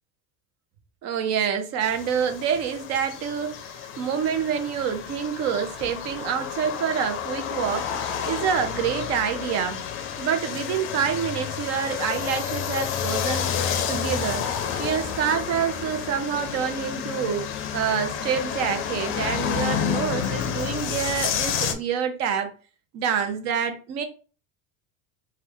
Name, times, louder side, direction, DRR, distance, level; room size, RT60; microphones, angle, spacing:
voice 1, 1.0-7.9 8.3-9.8 10.2-13.5 13.9-14.4 14.8-17.5 17.7-22.5 22.9-24.0, right 7 dB, 50° right, 0.7 m, -27 dB
sound 1, 1.8-21.7, left 8 dB, 40° left, 0.5 m, -30 dB
2.8 x 2.4 x 3.4 m
supercardioid pair, 135°, 33 cm